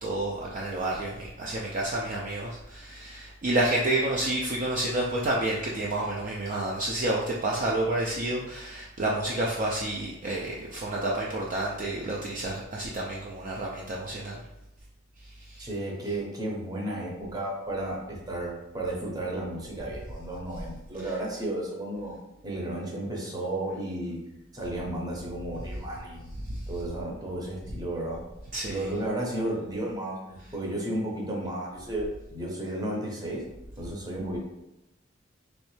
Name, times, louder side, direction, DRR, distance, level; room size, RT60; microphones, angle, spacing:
voice 1, 0.0-14.4 15.5-15.7 26.5-26.6 28.5-28.8, right 1 dB, 40° right, -3 dB, 0.4 m, -29 dB
voice 2, 15.6-22.2 22.4-24.2 24.5-26.3 26.7-28.2 28.7-33.4 33.8-34.4, right 1 dB, 20° right, -3 dB, 0.8 m, -33 dB
3.1 x 3.1 x 3.1 m, 0.92 s
head